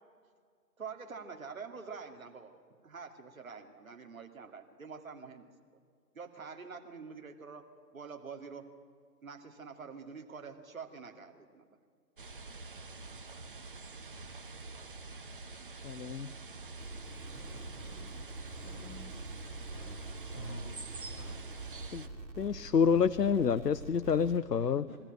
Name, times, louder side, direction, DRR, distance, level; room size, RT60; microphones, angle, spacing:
voice 1, 0.8-2.5 2.8-5.5 6.1-7.6 7.9-8.7 9.2-11.6, right 5 dB, 55° right, 5 dB, 2.4 m, -46 dB
sound 1, 12.2-22.1, right 3 dB, 30° right, 1.0 m, -46 dB
voice 2, 15.8-16.3 21.9-22.0 22.4-24.8, left 6 dB, 75° left, 13 dB, 0.8 m, -28 dB
sound 2, 16.7-24.4, right 3 dB, 85° right, 2.7 m, -46 dB
voice 3, 17.3-18.1 18.6-19.0 19.7-20.0 20.3-20.6 21.1-21.4 24.9-25.0, equal, 10° left, -3 dB, 1.6 m, -47 dB
22.5 x 15.0 x 9.1 m, 2.1 s
figure-of-eight pair, 155°, 50 cm